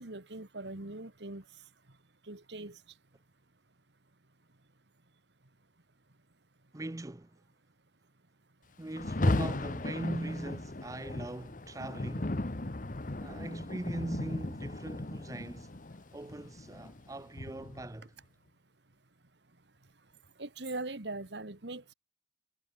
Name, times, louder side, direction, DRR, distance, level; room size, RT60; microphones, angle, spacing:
voice 1, 0.0-1.4 2.3-2.8 20.4-21.9, right 2 dB, 70° right, 2.1 m, -41 dB
voice 2, 6.7-7.4 8.8-12.4 13.2-15.7 16.1-18.1, right 1 dB, 20° right, 0.5 m, -40 dB
Rain, 8.9-18.0, left 2 dB, 45° left, 1.1 m, -36 dB
head